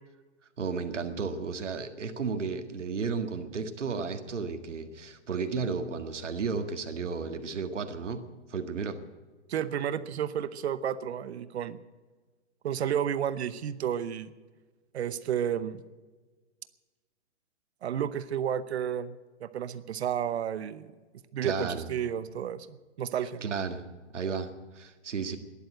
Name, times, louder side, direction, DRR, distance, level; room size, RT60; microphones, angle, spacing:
voice 1, 0.6-8.2 8.5-9.0 21.4-21.9 23.4-23.8 24.1-25.4, right 5 dB, 80° right, 7 dB, 1.8 m, -33 dB
voice 2, 9.5-11.8 12.6-14.3 14.9-15.8 17.8-20.9 21.3-23.4, right 9 dB, 65° right, 14 dB, 0.9 m, -32 dB
12.5 x 11.0 x 9.0 m, 1.3 s
hypercardioid pair, 140°, 36 cm